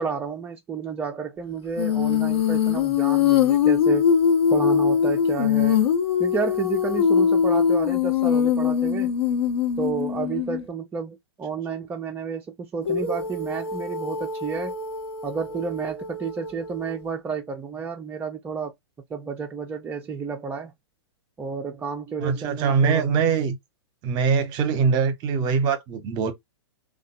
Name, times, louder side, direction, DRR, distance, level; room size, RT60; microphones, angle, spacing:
voice 1, 0.0-4.1 4.5-5.8 6.2-9.1 9.8-14.7 15.2-18.7 19.1-20.7 21.4-23.1, right 5 dB, 15° right, 0.4 m, -31 dB
Female singing, 1.8-10.7 12.9-17.1, left 7 dB, 65° left, 1.0 m, -22 dB
voice 2, 22.2-23.6 24.0-26.3, right 6 dB, 30° right, 0.8 m, -22 dB
3.2 x 2.3 x 2.8 m
figure-of-eight pair, 110°, 14 cm